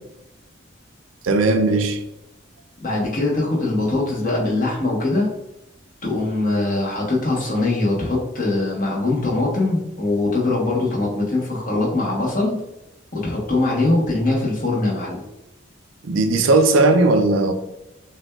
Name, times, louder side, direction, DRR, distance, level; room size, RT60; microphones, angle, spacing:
voice 1, 1.2-2.0 16.0-17.5, right 2 dB, 80° right, 0.4 m, -17 dB
voice 2, 2.8-5.3 6.0-12.6 13.1-15.2, left 2 dB, 40° left, 1.0 m, -22 dB
6.0 x 2.3 x 2.3 m
head